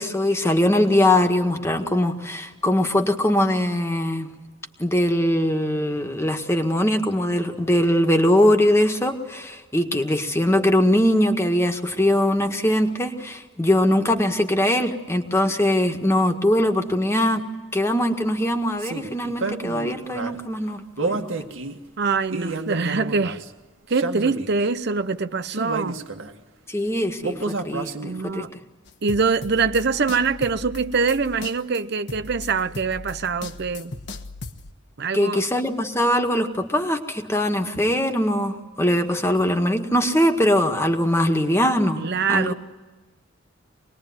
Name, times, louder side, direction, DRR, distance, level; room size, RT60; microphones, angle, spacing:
voice 1, 0.0-4.3 4.8-17.4 17.7-21.3 26.7-28.4 35.1-42.0 42.3-42.5, left 1 dB, 15° left, 1.7 m, -21 dB
sound 1, 18.8-20.4 21.0-21.8 22.3-23.5 23.9-24.7 25.5-26.3 27.2-28.3, right 3 dB, 80° right, 1.9 m, -30 dB
voice 2, 22.0-23.4 23.9-26.0 28.0-28.5 29.0-33.9 35.0-35.4 42.0-42.5, right 4 dB, 55° right, 0.8 m, -24 dB
sound 2, 28.9-34.7, left 3 dB, 60° left, 1.4 m, -38 dB
25.5 x 20.5 x 9.6 m
head